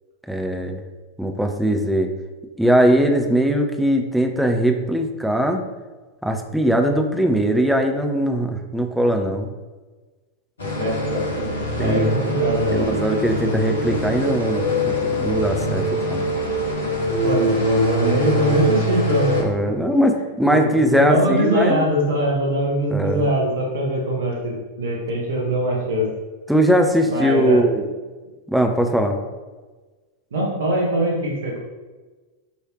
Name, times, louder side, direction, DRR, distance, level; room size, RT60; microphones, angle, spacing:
voice 1, 0.3-0.8 1.2-2.1 2.6-5.6 6.2-9.5 11.8-12.1 12.7-16.3 19.4-21.8 22.9-23.3 26.5-27.9 28.5-29.2, equal, ahead, 3 dB, 0.8 m, -20 dB
sound 1, 10.6-19.4, equal, 70° left, 1.5 m, -23 dB
voice 2, 10.8-11.5 11.8-12.8 17.2-19.5 20.5-26.1 27.1-27.6 30.3-31.6, equal, 60° right, -2 dB, 1.6 m, -22 dB
9.9 x 3.3 x 3.1 m, 1.3 s
figure-of-eight pair, 90°, 0 cm